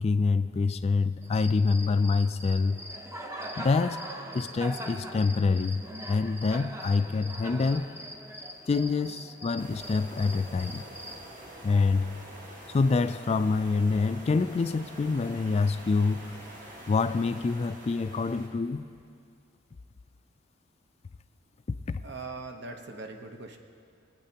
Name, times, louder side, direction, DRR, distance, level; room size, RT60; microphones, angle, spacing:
voice 1, 0.0-2.8 3.6-4.0 4.3-7.9 8.7-10.8 11.6-12.2 12.7-16.4 16.9-18.8 21.7-22.0, left 4 dB, 35° left, 0.3 m, -26 dB
Cricket, 1.2-11.2, equal, 15° right, 0.7 m, -41 dB
sound 1, 9.6-18.5, equal, 45° right, 1.6 m, -46 dB
voice 2, 22.0-23.6, right 3 dB, 60° right, 0.9 m, -40 dB
21.0 x 9.0 x 2.9 m
head